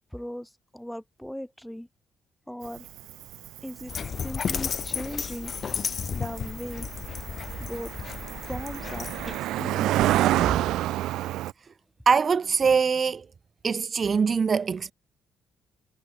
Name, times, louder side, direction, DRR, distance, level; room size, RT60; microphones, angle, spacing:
voice 1, 0.1-1.9 2.5-2.9 3.6-3.9 4.2-5.5 6.1-6.9 7.6-7.9 8.4-10.2, equal, 5° left, 7.6 m, -38 dB
Cricket, 2.6-11.5, right 15 dB, 90° right, 0.4 m, -29 dB
Dog, 3.9-9.4, left 7 dB, 50° left, 1.3 m, -33 dB
voice 2, 12.1-13.3 13.6-14.9, right 5 dB, 40° right, 0.7 m, -23 dB
cardioid pair, 90°, 0 cm